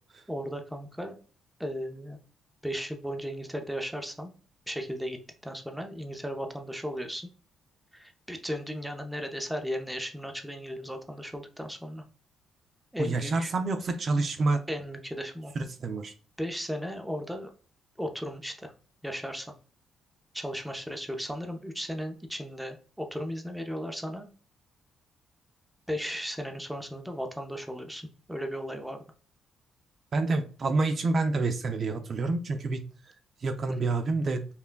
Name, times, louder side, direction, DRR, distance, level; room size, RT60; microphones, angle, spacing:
voice 1, 0.3-1.1 1.6-2.2 2.6-4.3 4.7-7.3 7.9-12.0 12.9-13.5 14.7-15.5 16.4-17.5 18.0-18.7 19.0-19.5 20.3-24.3 25.9-29.0 33.8-33.9, equal, 5° right, 4 dB, 0.7 m, -36 dB
voice 2, 13.0-14.6 15.6-16.1 30.1-32.8 33.4-34.5, right 3 dB, 50° right, 7 dB, 0.5 m, -28 dB
5.6 x 2.2 x 2.2 m, 0.39 s
cardioid pair, 90°, 0 cm